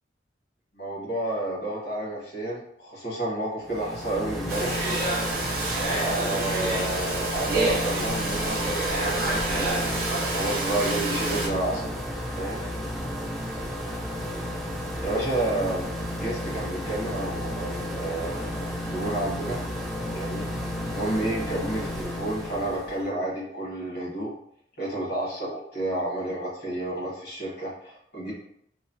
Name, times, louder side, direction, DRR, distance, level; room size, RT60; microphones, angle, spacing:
voice 1, 0.7-4.8 5.9-12.0 12.4-12.6 15.0-15.8 16.1-19.6 20.1-20.5 20.9-24.3 24.8-28.3, right 1 dB, 65° left, -5 dB, 1.2 m, -30 dB
sound 1, 3.6-23.0, left 1 dB, ahead, 0.3 m, -32 dB
Domestic sounds home sounds, 4.5-11.5, right 2 dB, 50° right, 0.5 m, -28 dB
3.0 x 2.0 x 2.5 m, 0.71 s
head